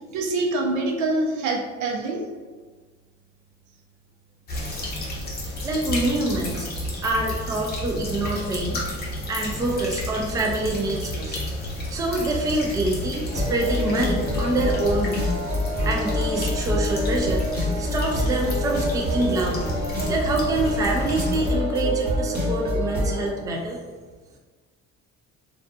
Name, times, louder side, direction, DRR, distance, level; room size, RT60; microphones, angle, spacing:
voice 1, 0.1-2.2, right 2 dB, 85° right, 1 dB, 0.6 m, -25 dB
sound 1, 4.5-21.5, left 1 dB, 35° left, 0.7 m, -31 dB
voice 2, 5.6-6.7 7.0-8.8 9.3-11.4 11.9-15.3 15.8-19.7 20.1-23.8, right 2 dB, 10° right, 0 dB, 0.3 m, -26 dB
sound 2, 13.3-23.3, left 1 dB, 35° right, 1.0 m, -27 dB
2.6 x 2.3 x 2.3 m, 1.4 s
cardioid pair, 120°, 29 cm